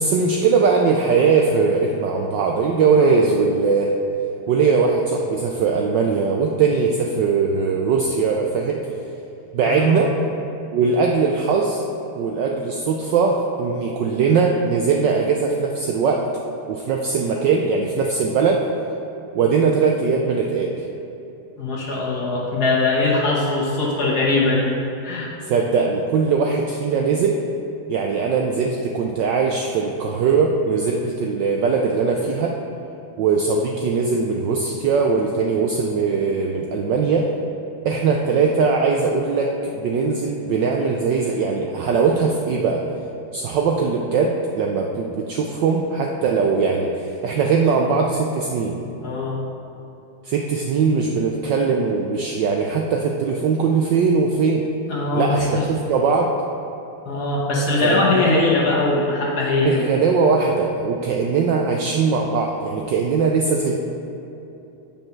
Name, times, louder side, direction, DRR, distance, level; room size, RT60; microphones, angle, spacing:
voice 1, 0.0-3.9 4.5-8.8 9.5-10.1 10.7-11.8 12.2-16.3 16.7-18.6 19.3-20.8 25.4-27.4 27.9-32.6 33.2-37.3 37.8-42.8 43.3-48.8 50.2-54.6 55.1-56.3 57.8-58.5 59.6-63.8, right 5 dB, 75° right, 1 dB, 1.0 m, -20 dB
voice 2, 9.6-10.0 21.6-24.7 25.0-25.3 49.0-49.4 54.9-55.7 57.0-60.0, left 3 dB, 50° left, -4 dB, 1.7 m, -21 dB
7.3 x 5.4 x 5.8 m, 3.0 s
omnidirectional pair, 2.4 m